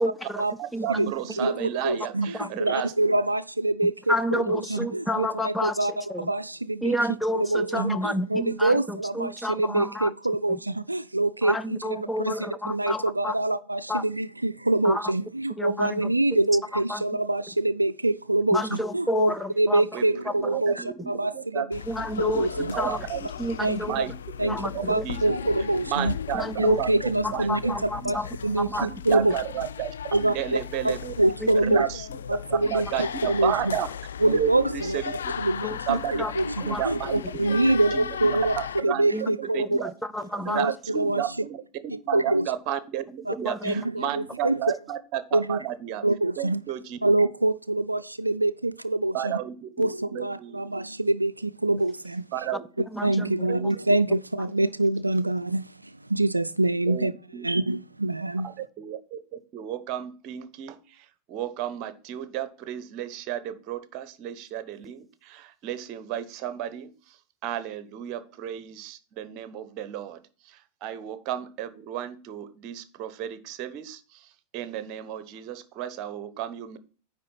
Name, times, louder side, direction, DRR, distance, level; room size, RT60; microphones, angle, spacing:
voice 1, 0.0-0.4 0.7-1.1 1.6-1.7 2.4-2.6 4.1-6.3 6.8-10.1 10.5-10.6 11.4-13.4 13.9-14.0 14.8-15.1 15.6-16.1 16.7-17.0 18.5-19.9 20.3-20.4 21.9-22.5 22.8-23.1 23.4-24.0 24.5-25.1 26.3-26.8 27.2-28.3 28.6-28.9 31.4-31.8 35.6-35.8 36.2-36.3 36.7-36.8 39.1-40.7 43.4-43.7 52.9-53.5, left 1 dB, 5° left, 0.4 m, -30 dB
voice 2, 0.6-2.9 19.9-20.1 20.3-21.7 22.3-22.4 22.7-23.3 23.8-24.1 24.4-25.3 25.9-27.7 28.0-28.1 28.8-31.1 31.5-32.1 32.6-33.9 34.2-35.3 35.9-36.2 36.6-37.6 37.9-38.1 38.6-39.1 39.4-39.8 40.5-46.0 46.4-47.0 49.1-50.7 52.3-52.9 53.5-53.7 56.9-57.5 58.4-67.2 67.4-76.8, right 11 dB, 40° right, 0.8 m, -33 dB
voice 3, 1.8-5.9 6.2-6.9 7.3-21.8 22.2-22.8 23.6-24.1 24.4-26.1 26.6-28.2 28.4-29.3 30.1-30.6 30.8-31.9 32.3-33.8 34.2-35.0 35.4-38.5 38.8-39.8 40.5-41.2 41.9-42.5 43.3-43.4 43.6-44.6 45.3-45.6 46.0-46.6 47.0-49.4 49.8-52.2 52.8-57.1 57.4-58.5, right 2 dB, 85° right, 0.3 m, -25 dB
sound 1, 21.7-38.8, left 8 dB, 65° left, 0.4 m, -37 dB
9.6 x 3.7 x 5.6 m
figure-of-eight pair, 90°, 0 cm